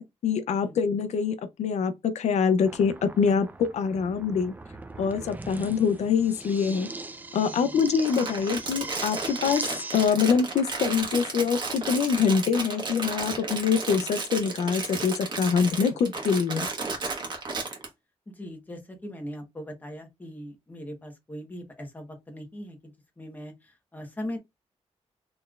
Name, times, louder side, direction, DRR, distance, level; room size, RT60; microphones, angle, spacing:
voice 1, 0.0-4.5 5.0-6.9 7.3-9.6 9.9-16.7, left 6 dB, 80° left, 0.5 m, -25 dB
sound 1, 2.6-10.1, right 2 dB, 15° right, 0.4 m, -40 dB
Crumpling crinkling, 7.8-17.9, right 4 dB, 40° right, 1.2 m, -33 dB
voice 2, 18.3-24.4, equal, 15° left, 1.0 m, -40 dB
4.1 x 3.1 x 2.3 m
wide cardioid pair, 140°, 12 cm